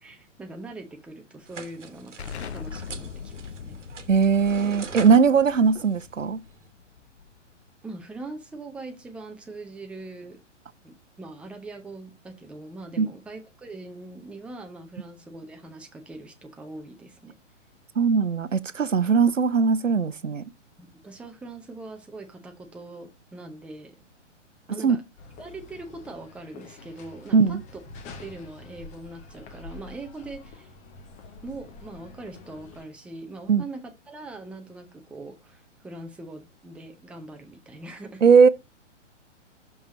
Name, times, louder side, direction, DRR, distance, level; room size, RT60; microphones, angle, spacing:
voice 1, 0.0-3.8 7.8-10.4 10.8-17.3 20.8-24.0 24.7-25.0 25.4-27.6 28.2-30.7 31.4-38.2, right 2 dB, 5° right, 0.7 m, -41 dB
sound 1, 1.5-6.7, right 6 dB, 70° right, 1.3 m, -43 dB
Explosion, 2.2-7.6, left 6 dB, 60° left, 0.7 m, -41 dB
voice 2, 4.1-6.4 13.0-13.1 18.0-20.4 24.7-25.0 27.3-27.6 33.5-33.6 38.2-38.5, right 5 dB, 90° right, 0.7 m, -19 dB
sound 2, 25.2-32.8, left 3 dB, 20° left, 1.1 m, -46 dB
6.0 x 5.1 x 5.1 m
figure-of-eight pair, 120°, 37 cm